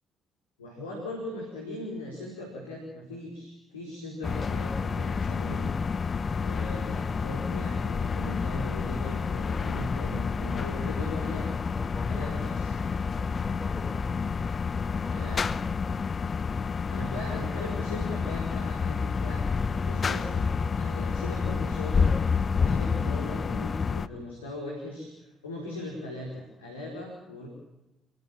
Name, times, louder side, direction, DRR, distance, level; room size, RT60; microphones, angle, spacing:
voice 1, 0.6-5.7 6.4-11.5 12.1-12.7 15.1-15.5 16.9-19.5 19.7-20.5 20.7-22.1 22.5-27.5, left 1 dB, 80° left, -1 dB, 4.7 m, -39 dB
sound 1, 4.2-24.1, left 5 dB, 35° left, 0.9 m, -29 dB
voice 2, 11.4-12.4 13.2-14.1 14.8-16.0, equal, ahead, 6 dB, 4.7 m, -47 dB
27.5 x 20.0 x 7.3 m, 0.96 s
figure-of-eight pair, 45°, 0 cm